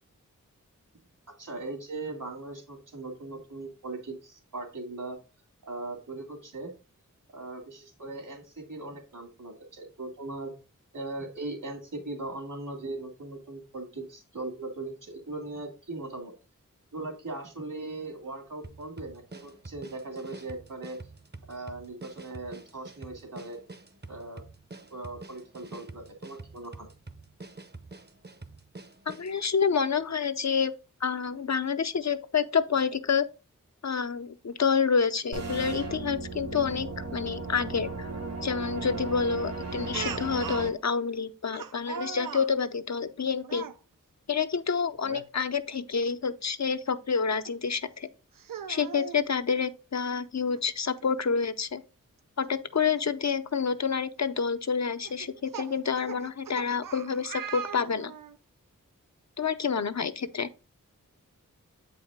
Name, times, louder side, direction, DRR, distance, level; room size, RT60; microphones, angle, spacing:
voice 1, 1.3-5.2 5.6-6.7 7.3-10.5 10.9-16.3 16.9-21.0 21.5-23.6 24.1-24.4 24.9-26.9, right 2 dB, 70° right, 2.4 m, -39 dB
sound 1, 18.6-29.4, right 3 dB, 30° right, 0.8 m, -46 dB
voice 2, 29.1-30.7 31.0-33.3 33.8-38.1 38.4-43.6 44.3-48.1 48.7-51.8 52.4-58.1 59.4-60.5, left 6 dB, 55° left, 0.6 m, -28 dB
sound 2, 35.3-40.7, right 3 dB, 50° right, 1.2 m, -36 dB
Speech, 39.9-40.7 41.5-42.5 43.4-43.8 45.0-45.3 45.7-45.8 47.4-47.5 48.3-49.2 50.6-50.7 51.0-51.1 53.0-53.1 53.7-53.9 55.0-58.4, right 7 dB, 90° right, 0.6 m, -39 dB
7.8 x 4.8 x 3.6 m
wide cardioid pair, 60°, 32 cm